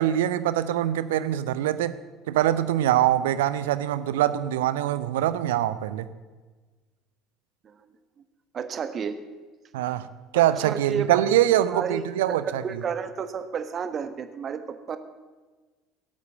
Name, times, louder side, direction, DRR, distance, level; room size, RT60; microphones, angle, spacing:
voice 1, 0.0-2.0 2.3-6.1 9.7-10.1 10.3-12.6, right 12 dB, 65° right, 14 dB, 0.6 m, -23 dB
voice 2, 8.5-9.2 10.3-11.4 11.7-14.6 14.9-15.0, right 7 dB, 35° right, 10 dB, 1.3 m, -31 dB
17.0 x 8.3 x 7.7 m, 1.3 s
figure-of-eight pair, 60°, 0 cm